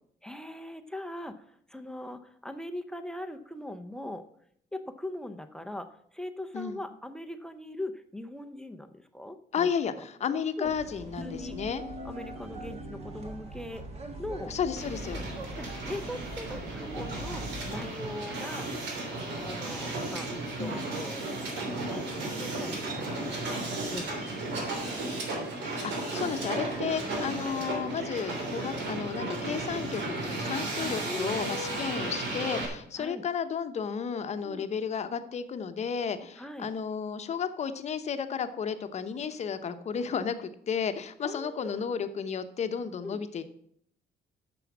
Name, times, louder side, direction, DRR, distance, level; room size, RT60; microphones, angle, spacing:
voice 1, 0.2-4.2 4.7-9.7 10.0-10.1 10.6-10.7 11.2-11.6 12.0-13.8 14.2-14.5 15.6-18.7 19.4-20.3 20.5-21.4 21.7-23.6 23.9-25.0 27.0-27.5 31.0-31.4 33.0-33.2 34.4-34.7 36.4-36.7 41.2-41.9 43.0-43.2, left 1 dB, 5° left, 7 dB, 0.6 m, -40 dB
voice 2, 9.5-11.8 14.5-15.2 20.6-20.8 25.6-43.4, left 6 dB, 40° left, 9 dB, 0.9 m, -33 dB
sound 1, 10.6-17.7, right 1 dB, 35° right, 1.5 m, -41 dB
Hiss, 14.8-32.6, right 2 dB, 85° right, 3.2 m, -34 dB
9.4 x 7.1 x 7.2 m, 0.67 s
cardioid pair, 165°, 18 cm